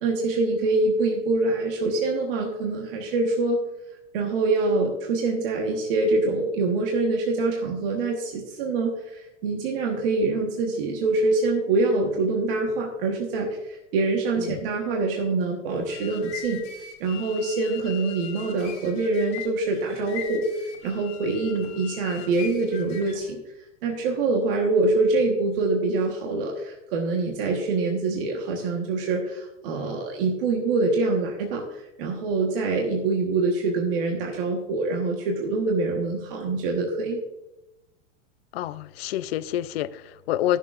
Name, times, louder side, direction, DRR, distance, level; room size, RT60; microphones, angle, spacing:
voice 1, 0.0-3.6 4.1-16.6 17.0-20.5 20.8-23.4 23.8-37.2, right 3 dB, 45° right, 1 dB, 1.4 m, -25 dB
sound 1, 15.7-23.3, left 9 dB, 25° left, 1.7 m, -41 dB
voice 2, 38.5-40.6, left 13 dB, 55° left, 15 dB, 0.5 m, -28 dB
20.0 x 6.9 x 2.5 m, 0.97 s
supercardioid pair, 170°, 37 cm